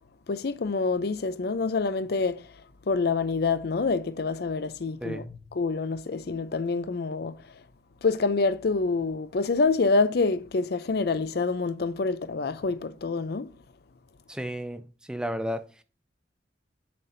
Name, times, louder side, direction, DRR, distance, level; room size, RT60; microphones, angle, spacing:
voice 1, 0.3-2.5 2.9-5.3 5.5-7.4 8.0-13.5, left 4 dB, 60° left, 0.5 m, -26 dB
voice 2, 14.3-14.8 15.1-15.6, equal, 5° right, 0.4 m, -32 dB
7.4 x 5.9 x 2.6 m
head